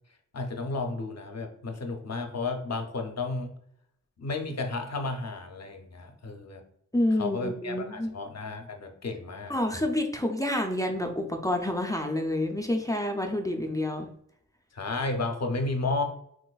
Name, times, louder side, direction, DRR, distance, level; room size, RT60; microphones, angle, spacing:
voice 1, 0.3-3.5 4.2-6.6 7.2-9.5 14.7-16.0, left 3 dB, 55° left, 4 dB, 0.6 m, -32 dB
voice 2, 6.9-8.1 9.5-14.1, left 1 dB, 10° left, 2 dB, 0.4 m, -28 dB
4.0 x 2.5 x 2.3 m, 0.70 s
wide cardioid pair, 60°, 31 cm